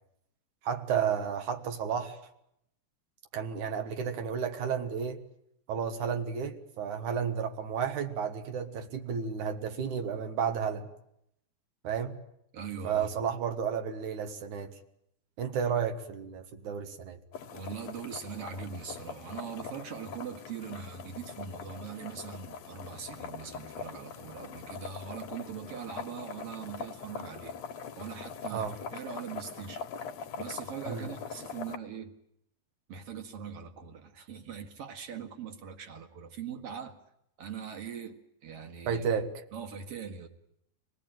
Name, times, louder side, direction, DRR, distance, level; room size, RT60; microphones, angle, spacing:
voice 1, 0.6-2.2 3.3-5.2 5.7-10.9 11.8-12.2 12.8-14.7 15.4-17.2 28.5-28.7 30.9-31.1 38.9-39.3, right 7 dB, 75° right, 3.0 m, -32 dB
voice 2, 12.5-13.1 17.5-27.6 28.0-29.8 30.4-32.1 32.9-37.0 37.4-39.1 39.5-40.3, right 7 dB, 55° right, 2.6 m, -41 dB
sound 1, 17.3-31.8, left 6 dB, 65° left, 2.2 m, -43 dB
26.0 x 18.5 x 9.2 m
omnidirectional pair, 3.5 m